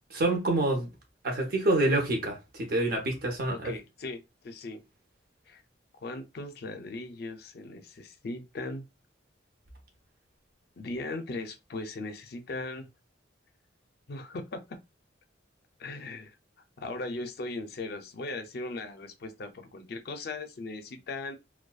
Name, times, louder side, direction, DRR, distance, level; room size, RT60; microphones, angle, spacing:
voice 1, 0.1-0.9 1.2-3.7, right 2 dB, 50° right, 0.8 m, -27 dB
voice 2, 3.5-4.8 5.5-5.6 6.0-8.8 10.8-12.9 14.1-14.6 15.8-16.3 16.8-21.3, left 2 dB, 55° left, 0.4 m, -38 dB
2.5 x 2.2 x 2.2 m
head